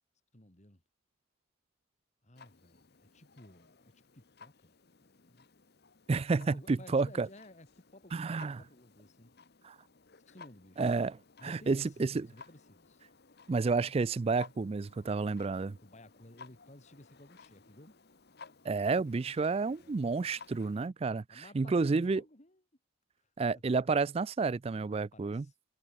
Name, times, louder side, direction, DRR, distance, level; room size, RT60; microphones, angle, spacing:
voice 1, 0.3-0.8 2.2-5.5 6.4-7.7 7.9-9.3 10.2-10.9 11.4-13.0 15.8-18.0 19.2-20.5 21.3-22.6 23.5-23.6 25.1-25.5, left 1 dB, 35° left, 2.4 m, -56 dB
Clock, 2.4-20.9, left 4 dB, 50° left, 1.2 m, -57 dB
voice 2, 6.1-7.3 8.1-8.6 9.6-9.8 10.8-11.2 11.4-12.3 13.5-15.8 18.6-22.2 23.4-25.5, right 4 dB, 30° right, 0.3 m, -30 dB
head